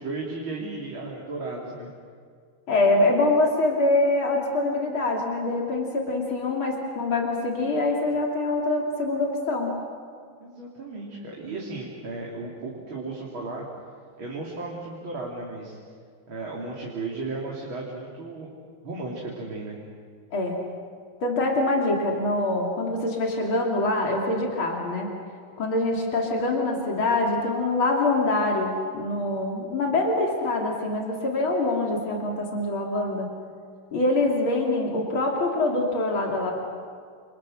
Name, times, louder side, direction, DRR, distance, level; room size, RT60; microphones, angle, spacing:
voice 1, 0.0-1.9 10.4-13.7 14.2-15.8 16.3-18.5 18.8-19.8, right 3 dB, 75° right, -3 dB, 3.9 m, -35 dB
voice 2, 2.7-9.7 20.3-20.6 21.2-25.1 25.6-33.3 33.9-36.5, left 2 dB, 80° left, 0 dB, 3.7 m, -24 dB
29.0 x 29.0 x 6.5 m, 2.1 s
omnidirectional pair, 2.2 m